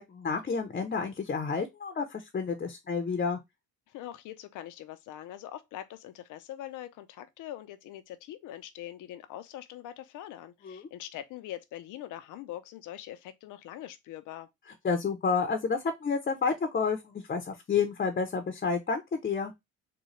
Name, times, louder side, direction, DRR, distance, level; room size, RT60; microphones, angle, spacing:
voice 1, 0.0-3.4 10.6-10.8 14.8-19.5, left 5 dB, 30° left, 0.7 m, -30 dB
voice 2, 3.9-14.5, left 12 dB, 85° left, 0.6 m, -43 dB
3.8 x 2.2 x 3.1 m
cardioid pair, 90°, 30 cm